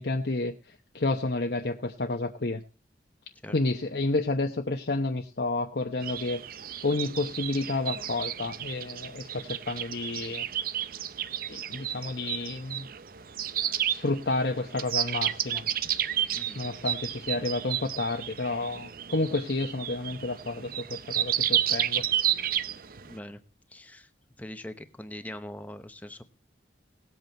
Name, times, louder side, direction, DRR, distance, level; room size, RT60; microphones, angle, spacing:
voice 1, 0.0-2.6 3.5-6.4 6.8-10.5 11.5-12.9 13.8-15.6 16.5-22.1, left 2 dB, 60° left, 3 dB, 0.9 m, -30 dB
sound 1, 6.0-23.1, right 11 dB, 50° right, 0.6 m, -32 dB
voice 2, 23.0-23.4 23.7-24.1 24.4-26.2, left 1 dB, 10° left, 9 dB, 0.8 m, -42 dB
18.0 x 8.1 x 4.5 m, 0.33 s
head